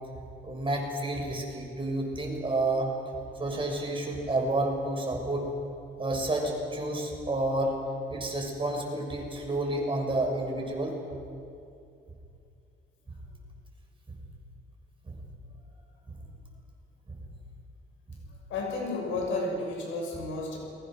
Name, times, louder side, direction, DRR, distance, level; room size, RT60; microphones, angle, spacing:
voice 1, 0.4-2.9 3.4-5.5 6.0-7.8 8.1-10.9 14.1-14.2 15.1-15.2 17.1-17.2, right 2 dB, 25° right, 1 dB, 6.6 m, -30 dB
voice 2, 18.5-20.6, left 2 dB, 85° left, 1 dB, 6.7 m, -32 dB
29.5 x 22.0 x 6.5 m, 2.5 s
cardioid pair, 90°, 20 cm